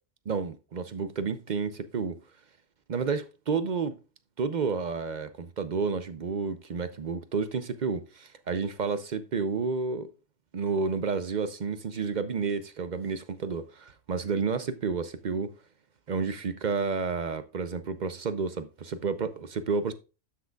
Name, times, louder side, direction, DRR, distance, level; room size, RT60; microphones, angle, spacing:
voice 1, 0.3-2.2 2.9-4.0 4.4-10.1 10.5-15.6 16.1-19.9, right 5 dB, 50° right, 0.6 m, -30 dB
12.0 x 6.3 x 2.3 m
omnidirectional pair, 1.4 m